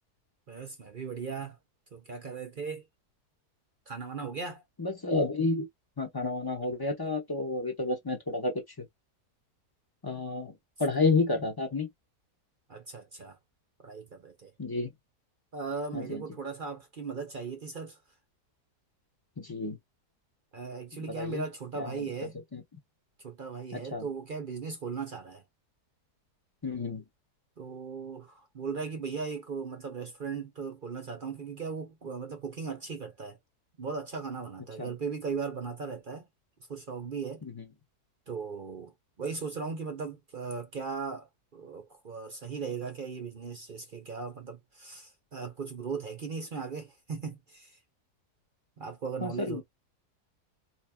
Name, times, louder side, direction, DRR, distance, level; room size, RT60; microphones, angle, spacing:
voice 1, 0.5-1.6 1.9-2.9 3.9-4.6 12.7-13.4 13.8-14.5 15.5-18.0 20.5-22.4 23.2-25.4 27.6-33.4 33.8-36.3 36.7-37.4 38.3-38.9 39.2-47.8 48.8-49.6, right 5 dB, 45° right, 0.7 m, -38 dB
voice 2, 4.8-5.7 6.0-8.5 10.0-10.5 10.8-11.9 14.6-14.9 15.9-16.2 19.4-19.8 21.1-21.4 22.0-22.1 22.5-22.6 23.7-24.0 26.6-27.0 34.8-34.9 37.4-37.6 49.2-49.6, left 3 dB, 20° left, 0.6 m, -30 dB
4.3 x 3.0 x 2.2 m
omnidirectional pair, 1.7 m